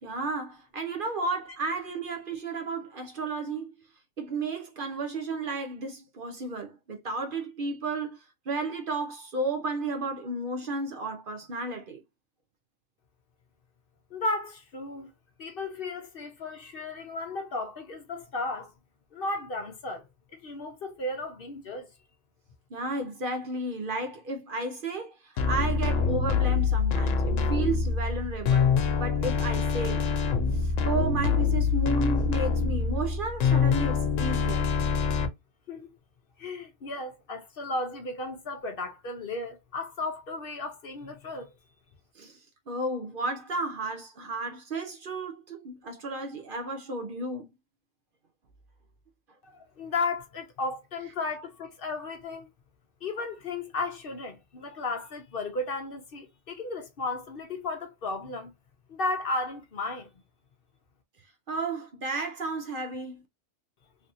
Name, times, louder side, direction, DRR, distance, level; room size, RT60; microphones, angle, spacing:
voice 1, 0.0-3.7 4.2-12.0 22.7-30.1 30.5-34.7 42.1-47.5 61.5-63.2, right 2 dB, 50° right, 0.8 m, -33 dB
voice 2, 14.1-15.1 15.4-18.7 19.1-20.1 20.3-21.9 35.7-35.9 36.4-41.5 49.4-52.5 53.0-58.5 58.9-60.1, left 2 dB, 55° left, 0.8 m, -34 dB
sound 1, 25.4-35.3, left 5 dB, 85° left, 1.0 m, -25 dB
3.4 x 2.7 x 2.6 m
omnidirectional pair, 1.3 m